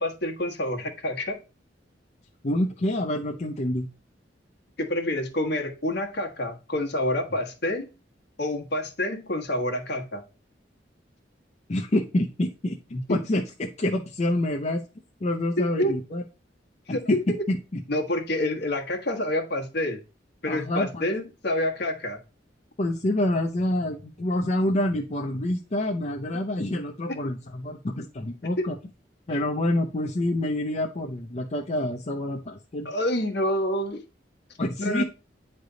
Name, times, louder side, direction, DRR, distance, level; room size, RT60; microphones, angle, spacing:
voice 1, 0.0-1.4 4.8-7.9 8.4-10.2 12.9-13.2 15.6-16.0 16.9-17.4 17.9-20.0 20.4-22.2 27.2-27.3 32.8-34.0 34.8-35.0, left 1 dB, 65° left, 1.3 m, -28 dB
voice 2, 2.4-3.9 11.7-14.8 15.2-16.2 16.9-17.8 20.5-21.0 22.8-28.8 29.3-32.9 34.6-35.0, left 1 dB, 40° left, 0.6 m, -27 dB
9.3 x 3.4 x 3.8 m
head